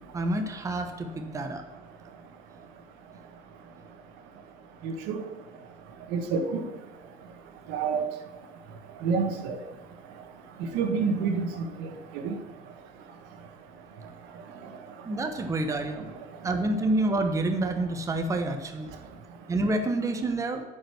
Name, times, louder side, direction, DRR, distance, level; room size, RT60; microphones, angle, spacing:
voice 1, 0.1-1.6 15.0-16.1 16.4-18.9 19.5-20.6, right 2 dB, 20° right, 5 dB, 1.0 m, -28 dB
voice 2, 4.8-5.2 6.1-6.6 7.7-8.1 9.0-9.6 10.7-11.5 11.8-11.9 12.2-12.3, right 5 dB, 85° right, 5 dB, 1.4 m, -27 dB
8.9 x 5.3 x 6.3 m, 1.3 s
cardioid pair, 140°, 17 cm